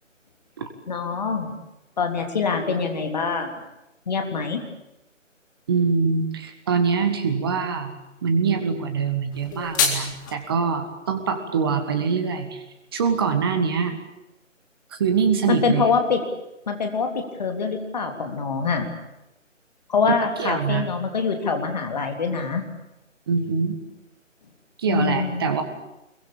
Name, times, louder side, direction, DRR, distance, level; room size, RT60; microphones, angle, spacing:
voice 1, 0.9-1.5 2.0-3.5 4.1-4.6 15.5-16.2 16.7-18.9 19.9-22.6 24.9-25.6, left 5 dB, 35° left, 4 dB, 3.5 m, -24 dB
voice 2, 5.7-7.9 8.2-12.6 12.9-14.0 15.0-15.8 20.4-20.8 23.3-23.8 24.8-25.6, right 5 dB, 20° right, 7 dB, 1.8 m, -23 dB
sound 1, 9.3-10.3, left 5 dB, 15° left, 2.2 m, -25 dB
25.0 x 22.5 x 8.8 m, 0.91 s
figure-of-eight pair, 155°, 39 cm